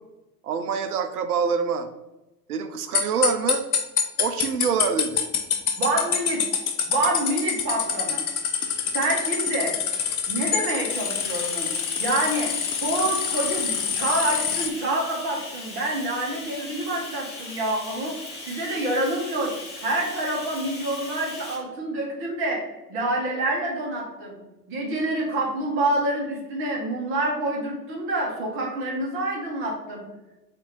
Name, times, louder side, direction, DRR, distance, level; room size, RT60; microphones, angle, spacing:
voice 1, 0.4-1.9 2.5-3.7 4.2-5.2 8.6-8.9 10.1-10.2, right 6 dB, 65° right, 8 dB, 0.5 m, -26 dB
sound 1, 2.9-14.7, left 7 dB, 65° left, 0.6 m, -26 dB
voice 2, 5.8-6.4 6.9-8.2 8.9-9.7 10.3-11.7 12.0-12.5 12.8-18.1 18.4-19.5 19.8-22.6 22.9-24.4 24.7-30.0, right 1 dB, 25° right, -1 dB, 0.9 m, -27 dB
Bathtub (filling or washing), 10.9-21.6, left 2 dB, 10° left, 0.7 m, -39 dB
2.7 x 2.5 x 4.3 m, 1.0 s
figure-of-eight pair, 100°, 49 cm